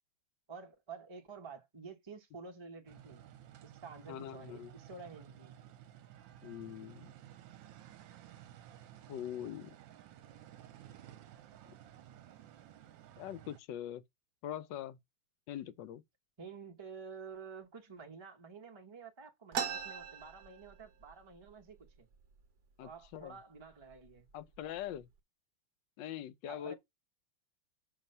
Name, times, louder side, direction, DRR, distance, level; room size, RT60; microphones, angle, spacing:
voice 1, 0.5-3.3 3.6-5.6 16.4-22.1 22.8-24.3 26.5-26.7, right 5 dB, 20° right, 0.8 m, -50 dB
sound 1, 2.9-13.6, right 11 dB, 80° right, 1.4 m, -55 dB
voice 2, 4.1-4.7 6.4-7.1 9.1-9.7 13.2-14.0 14.4-15.0 15.5-16.0 22.8-23.4 24.3-25.1 26.0-26.7, left 10 dB, 75° left, 1.3 m, -42 dB
sound 2, 19.5-21.1 21.5-21.6 21.8-22.4 23.0-23.2 23.9-24.1 24.5-25.0, right 7 dB, 60° right, 1.2 m, -39 dB
6.6 x 3.1 x 5.5 m
omnidirectional pair, 2.1 m